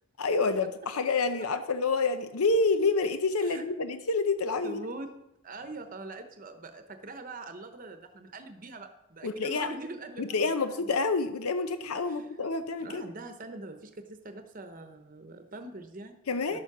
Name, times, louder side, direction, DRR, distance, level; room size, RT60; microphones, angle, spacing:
voice 1, 0.2-4.8 9.2-9.7 10.2-13.0 16.3-16.6, left 3 dB, 85° left, 9 dB, 0.7 m, -28 dB
voice 2, 4.6-5.2 5.4-10.9 12.0-12.4 12.8-16.2 16.5-16.6, right 2 dB, 40° right, 7 dB, 0.9 m, -43 dB
11.5 x 7.3 x 6.0 m, 0.89 s
head